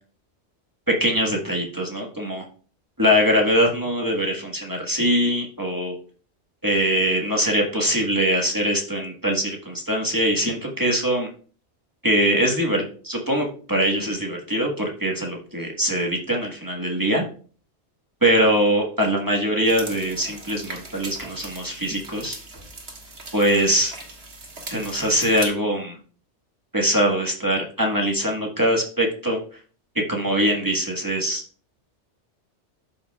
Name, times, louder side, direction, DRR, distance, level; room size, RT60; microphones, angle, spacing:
voice 1, 0.9-2.5 3.0-5.9 6.6-11.3 12.0-17.2 18.2-22.4 23.3-23.9 24.7-26.0 26.7-29.6 29.9-31.4, equal, 15° right, 0 dB, 1.3 m, -22 dB
sound 1, 19.6-25.5, right 3 dB, 60° right, 1.7 m, -39 dB
12.0 x 5.5 x 2.3 m, 0.42 s
omnidirectional pair, 1.2 m